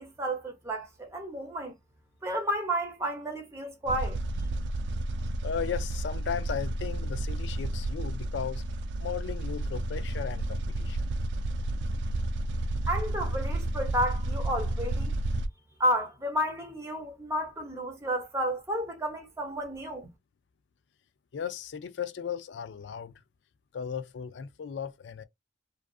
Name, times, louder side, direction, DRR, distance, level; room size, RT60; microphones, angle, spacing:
voice 1, 0.0-1.7 2.2-4.2 12.9-15.1 15.8-20.1, equal, 15° right, 0.7 m, -31 dB
sound 1, 3.9-15.5, right 1 dB, 85° right, 0.3 m, -31 dB
voice 2, 5.4-8.6 9.0-11.1 21.3-23.2 23.7-25.2, left 7 dB, 90° left, 0.4 m, -36 dB
2.4 x 2.3 x 2.3 m
head